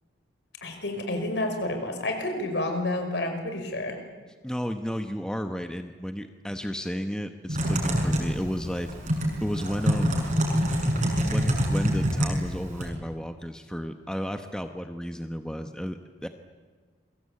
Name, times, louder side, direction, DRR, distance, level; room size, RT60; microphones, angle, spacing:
voice 1, 0.6-4.0, left 1 dB, 65° left, 5 dB, 5.3 m, -29 dB
voice 2, 4.4-10.4 11.3-16.3, equal, 5° left, 7 dB, 1.0 m, -33 dB
Typing, 7.5-12.9, equal, 40° right, 6.2 m, -26 dB
28.5 x 23.0 x 8.5 m, 1.4 s
head